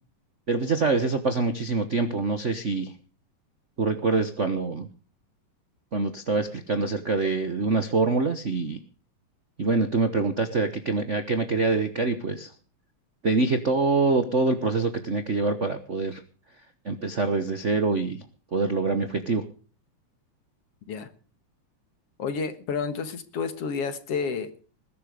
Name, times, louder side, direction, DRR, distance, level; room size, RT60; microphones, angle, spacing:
voice 1, 0.5-2.9 3.8-4.9 5.9-8.8 9.6-12.5 13.2-16.2 16.8-18.2 18.5-19.5, right 3 dB, 85° right, 9 dB, 0.6 m, -25 dB
voice 2, 22.2-24.5, left 5 dB, 60° left, 11 dB, 2.3 m, -30 dB
20.5 x 11.0 x 5.0 m, 0.39 s
omnidirectional pair, 3.4 m